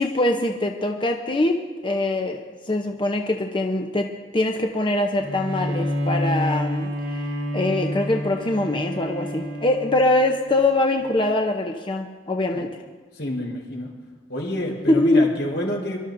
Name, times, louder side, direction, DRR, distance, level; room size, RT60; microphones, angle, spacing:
voice 1, 0.0-12.8 14.9-15.3, left 2 dB, 25° left, 3 dB, 0.7 m, -23 dB
Bowed string instrument, 5.2-10.7, equal, 75° right, 1.8 m, -28 dB
voice 2, 13.1-13.9 14.3-16.0, left 1 dB, 85° left, -2 dB, 4.1 m, -28 dB
26.5 x 12.0 x 2.6 m, 1.4 s
head